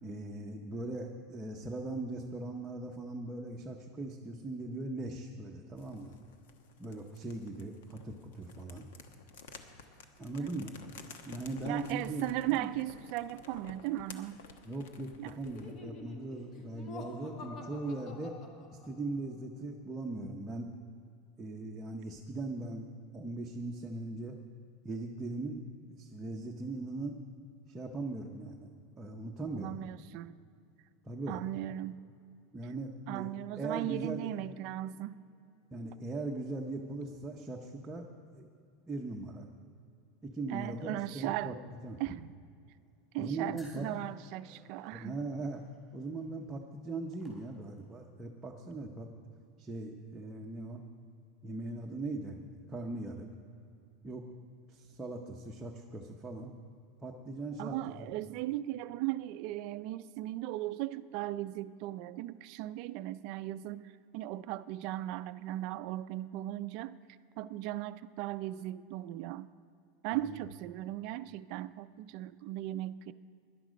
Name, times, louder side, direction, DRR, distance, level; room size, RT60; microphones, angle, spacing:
voice 1, 0.0-6.1 6.8-8.9 10.2-10.7 11.3-12.7 14.7-18.3 18.7-20.7 21.4-22.9 23.1-24.4 24.8-25.6 25.9-27.2 27.7-28.7 29.0-29.7 31.0-31.4 32.5-33.3 33.6-34.3 35.7-38.1 38.3-38.5 38.9-39.4 40.2-41.5 41.8-42.0 43.2-43.9 44.9-45.6 45.9-49.1 49.6-50.8 51.4-52.4 52.7-53.3 54.0-54.2 54.7-56.6 57.0-58.1 70.3-70.4, right 2 dB, 10° right, -1 dB, 0.8 m, -39 dB
sound 1, 5.8-15.8, left 5 dB, 80° left, 1.1 m, -53 dB
voice 2, 11.6-14.4 15.2-15.4 29.5-30.3 31.3-32.0 33.1-35.2 40.5-41.6 42.0-42.3 43.1-45.2 57.6-67.0 67.4-69.5 70.0-73.1, right 15 dB, 50° right, 14 dB, 0.4 m, -37 dB
Laughter, 15.4-19.1, left 2 dB, 30° left, 1.1 m, -48 dB
sound 2, 43.5-48.0, equal, 5° left, 4.1 m, -63 dB
17.0 x 11.5 x 5.1 m, 2.5 s
supercardioid pair, 165°, 0 cm